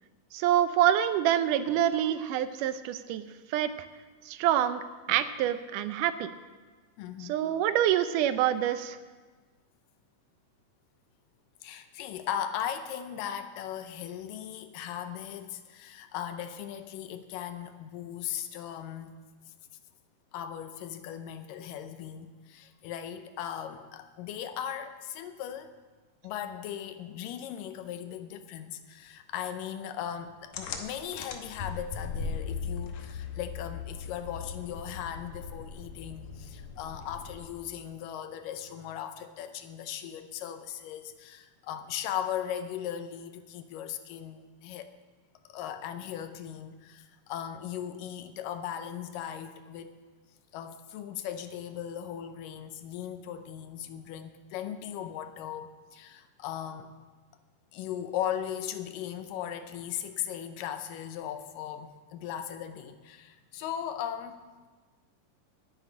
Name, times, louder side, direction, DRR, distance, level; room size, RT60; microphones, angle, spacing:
voice 1, 0.3-3.7 4.3-4.8 5.1-6.3 7.2-9.0, right 11 dB, 80° right, 12 dB, 2.1 m, -26 dB
voice 2, 7.0-7.3 11.6-19.1 20.3-25.7 26.2-44.9 45.5-49.9 50.5-56.9 57.7-64.4, left 10 dB, 85° left, 9 dB, 2.4 m, -38 dB
sound 1, 30.5-37.7, left 5 dB, 65° left, 2.0 m, -39 dB
9.6 x 7.9 x 9.5 m, 1.3 s
omnidirectional pair, 3.8 m